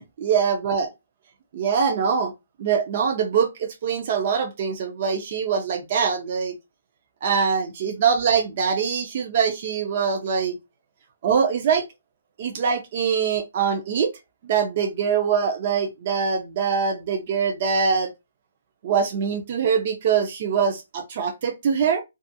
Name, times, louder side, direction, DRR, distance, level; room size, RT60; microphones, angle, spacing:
voice 1, 0.2-0.9 1.5-2.3 2.6-6.5 7.2-10.6 11.2-11.8 12.4-14.1 14.4-18.1 18.8-22.0, right 6 dB, 40° right, 0.5 m, -23 dB
2.5 x 2.4 x 2.6 m
hypercardioid pair, 165°, 0 cm